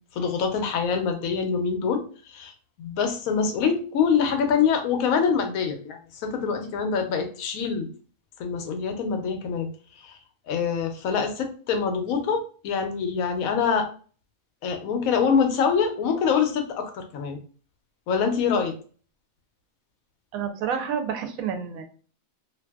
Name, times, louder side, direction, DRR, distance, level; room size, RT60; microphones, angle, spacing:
voice 1, 0.1-2.5 2.8-7.9 8.4-9.7 10.0-10.2 10.5-13.9 14.6-17.4 18.1-18.7, left 6 dB, 90° left, 6 dB, 1.0 m, -25 dB
voice 2, 20.3-21.8, right 7 dB, 90° right, 6 dB, 1.0 m, -29 dB
2.6 x 2.6 x 2.2 m, 0.41 s
omnidirectional pair, 1.4 m